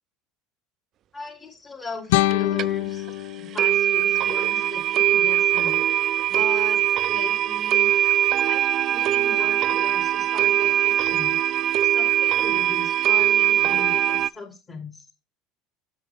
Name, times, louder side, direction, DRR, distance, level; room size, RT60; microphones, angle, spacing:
voice 1, 1.1-3.1 3.4-5.8 6.3-6.8 7.1-7.9 8.4-8.6 8.9-11.4 11.8-15.0, left 4 dB, 30° left, -3 dB, 2.8 m, -37 dB
sound 1, 2.1-5.1, left 16 dB, 80° left, 0.3 m, -27 dB
sound 2, 2.3-2.4 2.6-2.7 3.1-3.2 3.6-14.3, right 12 dB, 50° right, 0.3 m, -21 dB
7.8 x 7.0 x 3.4 m, 0.27 s
hypercardioid pair, 85°, 0 cm